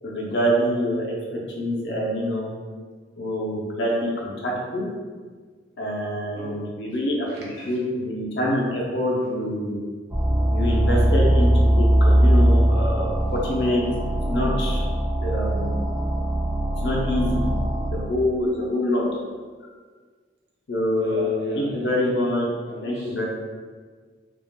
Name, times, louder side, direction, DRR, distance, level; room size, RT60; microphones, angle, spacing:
voice 1, 0.0-1.1 1.5-2.5 3.2-4.8 5.8-7.3 7.7-9.8 10.5-13.8 14.3-14.9 15.2-15.7 16.8-17.5 17.9-19.0 20.7-22.5 22.8-23.2, left 1 dB, 70° left, -3 dB, 0.6 m, -25 dB
voice 2, 7.3-7.8 12.7-13.2 20.9-22.1 22.6-23.2, right 1 dB, 70° right, -5 dB, 0.8 m, -39 dB
sound 1, 10.1-17.9, right 1 dB, 10° right, 0.3 m, -20 dB
3.5 x 2.4 x 2.2 m, 1.5 s
head